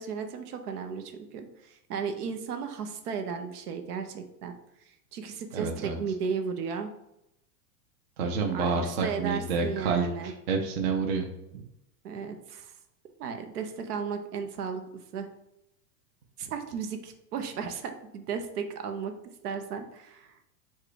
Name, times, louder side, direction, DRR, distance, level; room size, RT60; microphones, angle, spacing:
voice 1, 0.0-4.5 4.8-6.9 8.5-10.3 11.5-11.6 12.0-12.7 13.2-15.3 16.4-19.1 19.4-20.4, right 6 dB, 70° right, 7 dB, 0.8 m, -35 dB
voice 2, 5.5-6.0 8.2-11.3, right 4 dB, 40° right, 3 dB, 0.6 m, -29 dB
4.6 x 2.3 x 4.7 m, 0.84 s
supercardioid pair, 165°, 49 cm